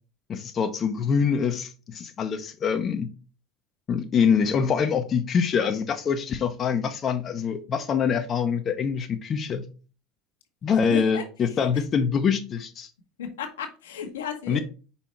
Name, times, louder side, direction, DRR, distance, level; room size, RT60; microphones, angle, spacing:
voice 1, 0.3-3.1 3.9-9.7 10.6-12.9 14.5-14.6, left 6 dB, 40° left, 6 dB, 0.8 m, -25 dB
voice 2, 10.9-11.8 13.2-14.6, left 8 dB, 85° left, 3 dB, 1.2 m, -35 dB
5.6 x 4.1 x 4.5 m, 0.36 s
hypercardioid pair, 75°, 0 cm